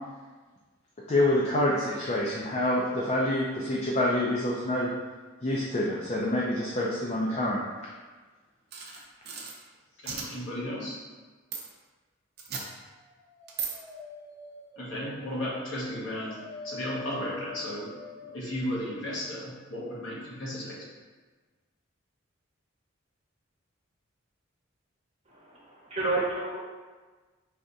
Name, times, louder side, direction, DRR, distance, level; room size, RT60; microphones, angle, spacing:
voice 1, 1.1-4.9 5.4-7.6, left 1 dB, 35° left, -4 dB, 0.4 m, -27 dB
sound 1, 8.7-9.5 10.0-10.3 11.5-11.6 12.4-12.6 13.5-13.7, right 6 dB, 50° right, 0.7 m, -35 dB
voice 2, 10.0-11.0 14.8-16.4 16.6-17.9 18.2-20.9, left 1 dB, 65° left, -6 dB, 1.3 m, -34 dB
Dog, 12.9-18.5, left 2 dB, 10° left, 1.0 m, -45 dB
voice 3, 25.3-26.6, right 2 dB, 30° right, -6 dB, 1.1 m, -31 dB
4.8 x 3.4 x 2.7 m, 1.3 s
head